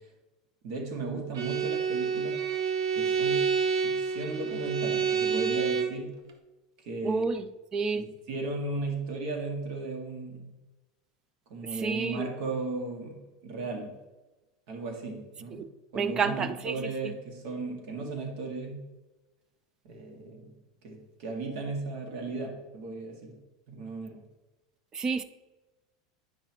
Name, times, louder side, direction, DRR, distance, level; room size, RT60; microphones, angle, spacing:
voice 1, 0.6-2.4 2.9-6.2 6.9-7.3 7.9-10.5 11.5-14.0 14.7-15.6 15.9-18.8 19.8-20.6 20.8-23.4 23.7-24.2, right 3 dB, 65° right, 1 dB, 2.0 m, -36 dB
Bowed string instrument, 1.3-6.0, right 6 dB, 90° right, 0.8 m, -28 dB
voice 2, 7.0-7.5 7.7-8.0 11.7-12.3 15.5-15.7 16.0-17.1 24.9-25.2, right 5 dB, 30° right, 12 dB, 0.5 m, -30 dB
9.1 x 5.5 x 3.0 m, 1.1 s
supercardioid pair, 110°, 2 cm